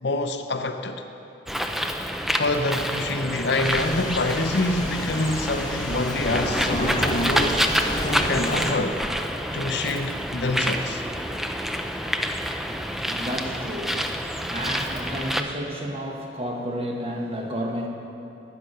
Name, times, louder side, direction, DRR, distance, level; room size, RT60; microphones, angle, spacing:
voice 1, 0.0-1.0 2.3-7.6 8.0-9.0 9.5-11.0, left 2 dB, 65° left, 7 dB, 0.6 m, -26 dB
Bird, 1.5-15.4, equal, ahead, 0.4 m, -28 dB
sound 1, 3.6-8.7, equal, 20° left, 0.8 m, -30 dB
voice 2, 12.7-17.9, equal, 30° right, 1 dB, 1.2 m, -32 dB
10.0 x 9.6 x 6.6 m, 2.8 s
head